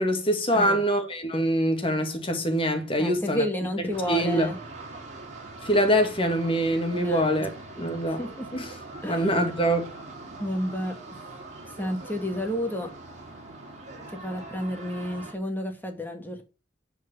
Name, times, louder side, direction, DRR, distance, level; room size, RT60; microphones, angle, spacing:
voice 1, 0.0-3.4 4.1-4.5 5.6-7.5 7.8-8.2 8.5-8.7 9.1-9.9, equal, 30° left, 1.9 m, -24 dB
voice 2, 3.0-4.6 6.9-7.3 8.2-8.5 9.0-9.3 10.4-11.0 11.8-12.9 14.1-16.4, equal, 10° left, 2.1 m, -31 dB
sound 1, 3.9-15.3, right 2 dB, 40° right, 3.6 m, -42 dB
11.0 x 4.8 x 7.1 m
head